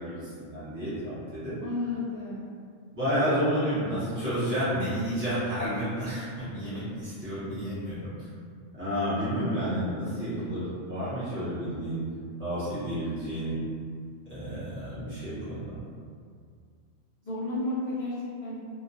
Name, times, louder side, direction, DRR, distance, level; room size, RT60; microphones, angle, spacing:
voice 1, 0.0-1.6 2.9-8.1 8.7-12.0 12.4-13.6 14.3-15.8, equal, 15° right, -15 dB, 0.4 m, -30 dB
voice 2, 1.6-2.5 9.4-9.5 17.2-18.1 18.4-18.6, left 2 dB, 80° left, -9 dB, 0.4 m, -32 dB
2.2 x 2.2 x 2.5 m, 2.2 s
omnidirectional pair, 1.3 m